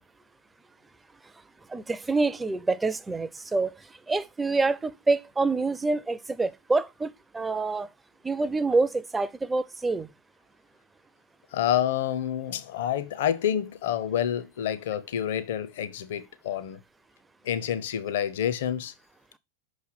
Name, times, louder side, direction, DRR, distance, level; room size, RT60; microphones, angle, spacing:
voice 1, 1.7-3.8 4.1-7.9 8.2-10.1, right 3 dB, 10° right, 0.4 m, -26 dB
voice 2, 11.5-16.8 17.4-18.9, left 10 dB, 55° left, 0.6 m, -28 dB
5.7 x 3.2 x 5.6 m
figure-of-eight pair, 90°, 0 cm